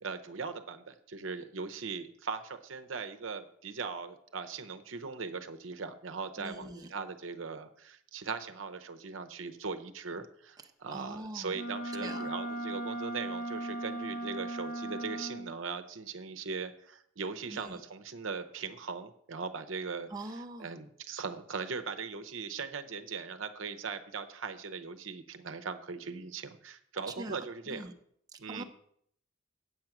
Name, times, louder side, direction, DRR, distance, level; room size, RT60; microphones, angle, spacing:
voice 1, 0.0-27.9 28.4-28.6, right 5 dB, 75° right, 9 dB, 0.8 m, -39 dB
voice 2, 6.4-6.9 10.9-11.6 12.0-12.3 17.5-17.8 20.1-20.7 27.2-27.4 27.7-27.9 28.3-28.6, right 2 dB, 20° right, 3 dB, 0.7 m, -43 dB
Wind instrument woodwind instrument, 11.5-15.6, right 1 dB, 45° left, 0.7 m, -37 dB
7.9 x 7.9 x 5.9 m, 0.68 s
head